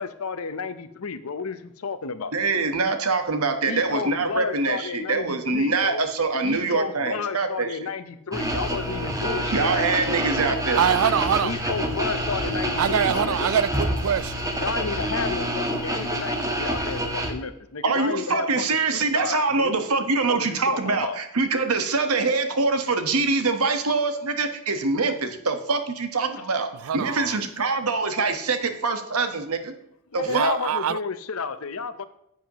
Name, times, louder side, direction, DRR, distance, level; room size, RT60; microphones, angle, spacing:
voice 1, 0.0-2.3 3.6-6.0 6.4-10.2 11.4-13.5 14.6-19.7 20.3-21.2 26.4-26.5 30.1-32.0, left 5 dB, 80° left, 0.7 m, -32 dB
voice 2, 2.3-7.8 9.5-10.8 17.8-29.7 30.1-30.5, right 3 dB, 90° right, 1.3 m, -24 dB
sound 1, 8.3-17.3, equal, 15° right, 1.2 m, -27 dB
voice 3, 10.8-11.5 12.8-14.4 26.8-27.4 30.3-31.0, right 8 dB, 75° right, 0.3 m, -24 dB
10.5 x 7.9 x 3.0 m
head